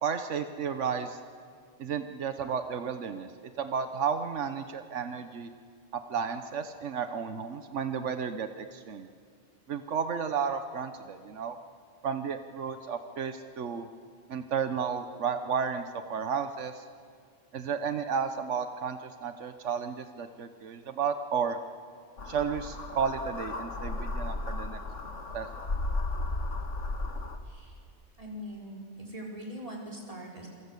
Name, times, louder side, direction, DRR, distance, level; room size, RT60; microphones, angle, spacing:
voice 1, 0.0-1.2 1.8-3.3 3.6-5.5 5.9-9.1 9.7-11.6 12.0-13.9 14.3-16.8 17.5-21.6 22.3-24.8 25.3-25.6, right 6 dB, 90° right, 9 dB, 1.3 m, -32 dB
sound 1, 22.2-27.4, left 2 dB, 90° left, 2.1 m, -34 dB
voice 2, 27.4-27.8 28.2-30.5, equal, 30° right, -1 dB, 5.4 m, -42 dB
27.5 x 24.0 x 8.3 m, 2.1 s
omnidirectional pair, 1.2 m